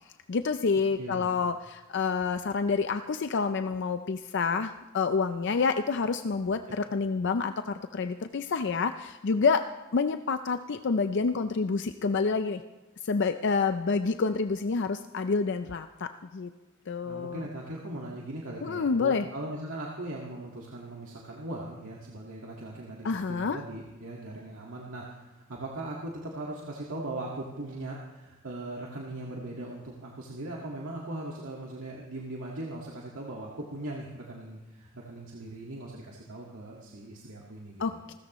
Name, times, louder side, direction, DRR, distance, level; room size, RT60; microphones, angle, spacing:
voice 1, 0.3-9.6 9.9-12.6 13.0-16.5 16.9-17.5 18.6-19.3 23.0-23.6 37.8-38.1, left 4 dB, 55° left, 9 dB, 0.5 m, -28 dB
voice 2, 1.0-1.3 6.7-6.8 17.0-37.8, right 1 dB, 75° right, -3 dB, 1.9 m, -39 dB
27.5 x 13.5 x 3.1 m, 1.1 s
head